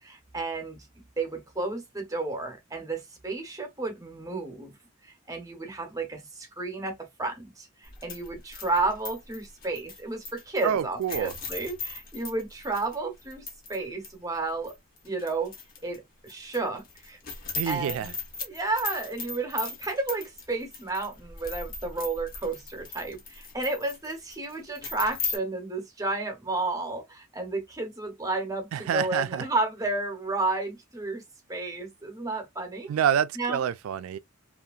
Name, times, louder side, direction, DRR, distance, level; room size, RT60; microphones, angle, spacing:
voice 1, 0.0-4.8 5.0-14.7 15.0-15.5 15.8-17.2 17.7-18.1 18.4-31.2 31.5-32.9 33.4-33.6, right 3 dB, 15° right, 0.7 m, -32 dB
sound 1, 7.8-13.8 14.0-14.1 14.6-16.0 16.3-25.4, left 4 dB, 45° left, 0.8 m, -38 dB
voice 2, 10.6-11.3 17.6-18.1 28.7-29.4 32.9-34.2, right 9 dB, 90° right, 0.3 m, -27 dB
2.7 x 2.4 x 2.3 m
head